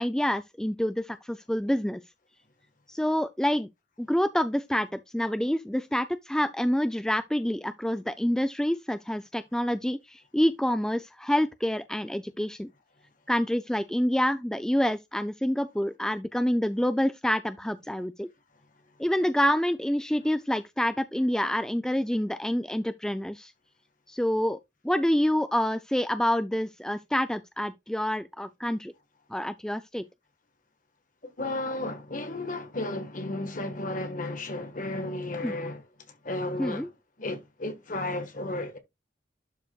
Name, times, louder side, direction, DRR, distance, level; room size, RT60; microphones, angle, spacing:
voice 1, 0.0-2.0 2.9-3.7 4.0-12.7 13.3-18.3 19.0-23.5 24.1-24.6 24.8-28.9 29.3-30.0 35.4-35.5 36.6-36.9, equal, 5° left, 0.3 m, -27 dB
voice 2, 31.2-36.9 37.2-38.8, left 2 dB, 45° left, 1.4 m, -33 dB
11.5 x 4.8 x 2.3 m
head